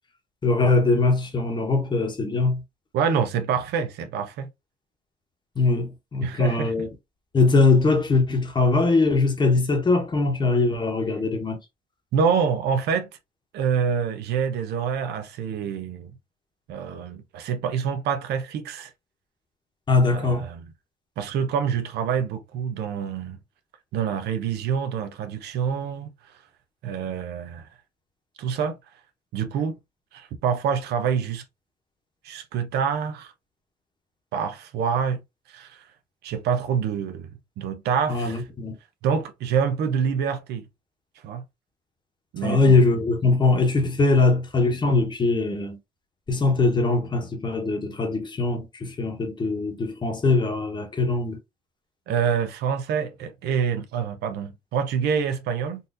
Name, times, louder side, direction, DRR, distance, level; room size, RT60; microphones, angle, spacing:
voice 1, 0.4-2.6 5.6-6.9 7.3-11.6 19.9-20.5 38.1-38.8 42.4-45.8 46.3-51.4, left 3 dB, 25° left, 1.1 m, -21 dB
voice 2, 2.9-4.5 6.2-6.7 12.1-13.1 13.5-16.1 16.7-18.9 20.1-20.6 21.2-23.4 23.9-26.1 26.8-27.7 28.4-28.7 29.3-29.8 30.1-31.4 32.2-33.3 34.3-35.2 35.5-35.8 36.2-37.3 37.6-38.4 39.0-40.6 41.2-41.4 42.3-42.8 52.1-55.8, right 7 dB, 75° right, 0.8 m, -26 dB
4.1 x 2.6 x 2.5 m
cardioid pair, 110°, 17 cm